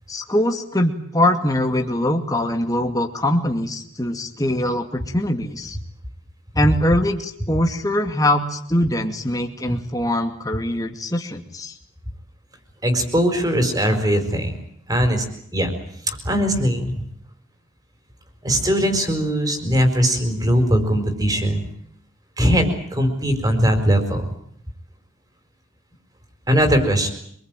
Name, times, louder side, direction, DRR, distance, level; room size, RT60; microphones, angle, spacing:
voice 1, 0.1-5.8 6.5-11.8, left 1 dB, 20° left, 4 dB, 2.3 m, -22 dB
voice 2, 12.8-14.6 14.9-15.2 15.5-15.7 16.1-16.9 18.4-21.7 22.4-24.3 26.5-27.1, equal, 20° right, 7 dB, 4.7 m, -20 dB
26.5 x 21.5 x 9.1 m, 0.68 s
head